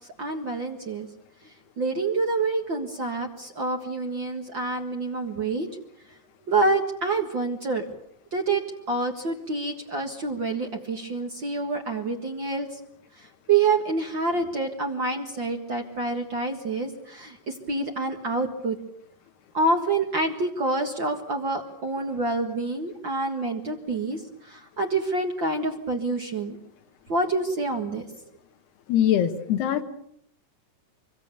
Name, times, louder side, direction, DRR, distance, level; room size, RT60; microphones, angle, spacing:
voice 1, 0.2-1.1 1.4-5.8 6.5-7.9 8.3-8.6 8.9-12.8 13.1-18.8 19.5-26.6 27.1-28.2, right 3 dB, 70° right, 3 dB, 1.1 m, -27 dB
voice 2, 28.9-29.8, left 10 dB, 70° left, 7 dB, 3.4 m, -22 dB
25.0 x 24.0 x 6.9 m, 0.72 s
omnidirectional pair, 5.1 m